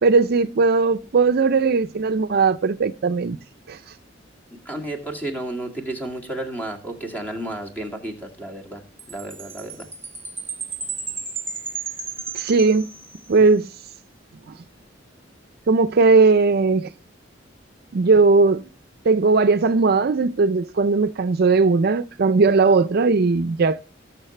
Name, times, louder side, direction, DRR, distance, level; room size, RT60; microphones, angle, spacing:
voice 1, 0.0-3.4 3.7-3.8 12.3-12.9 13.3-13.7 15.7-16.9 17.9-18.6 19.0-23.8, right 4 dB, 55° right, 0.5 m, -18 dB
voice 2, 4.5-8.8 9.1-9.9, right 1 dB, 10° left, 2.2 m, -32 dB
Chime, 9.0-13.5, right 5 dB, 15° right, 1.3 m, -33 dB
19.5 x 6.5 x 3.3 m
head